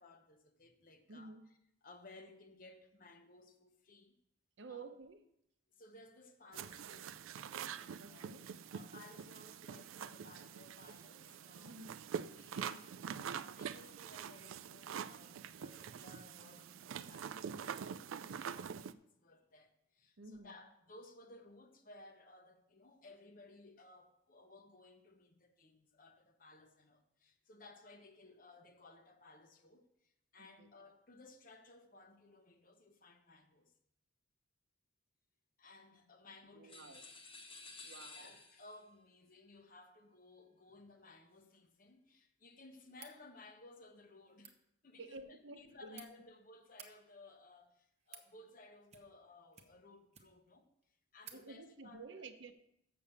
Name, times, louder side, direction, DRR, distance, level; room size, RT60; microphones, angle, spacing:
voice 1, 0.0-4.1 4.7-4.9 5.7-7.2 7.7-8.3 8.7-11.8 12.3-33.7 35.6-37.1 38.1-44.6 44.8-52.3, left 2 dB, 45° left, 0.9 m, -59 dB
voice 2, 1.1-1.5 4.6-5.2 8.0-8.5 11.6-12.0 20.2-20.5 30.6-30.7 36.5-37.1 37.8-38.3 45.0-46.0 51.3-52.5, right 3 dB, 65° right, 0.8 m, -51 dB
sound 1, 6.5-18.9, right 7 dB, 85° right, 0.4 m, -45 dB
sound 2, 36.7-38.8, left 3 dB, 25° left, 1.2 m, -53 dB
sound 3, 42.9-43.2 44.3-44.6 45.5-46.1 46.6-46.9 47.7-48.3 48.9-49.2 49.5-50.5 50.8-50.9 51.2-51.4, right 7 dB, 35° right, 0.8 m, -56 dB
6.9 x 6.7 x 7.0 m
head